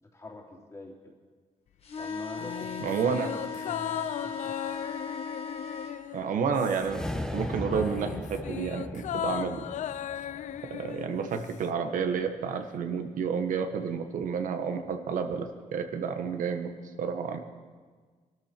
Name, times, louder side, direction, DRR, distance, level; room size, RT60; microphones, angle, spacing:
voice 1, 0.1-1.1 2.0-2.9 3.6-4.5, left 2 dB, 20° left, 0 dB, 2.8 m, -44 dB
sound 1, 1.8-6.0, left 4 dB, 50° left, 2.0 m, -38 dB
sound 2, 2.4-7.1 7.4-11.7 12.0-12.1, left 10 dB, 65° left, 0.5 m, -37 dB
voice 2, 2.8-3.3 6.1-7.0 7.3-9.6 10.7-16.7 17.0-17.4, right 6 dB, 75° right, 7 dB, 1.4 m, -30 dB
sound 3, 6.8-11.2, left 1 dB, 5° left, 1.0 m, -37 dB
23.5 x 13.0 x 4.5 m, 1.5 s
cardioid pair, 130°, 14 cm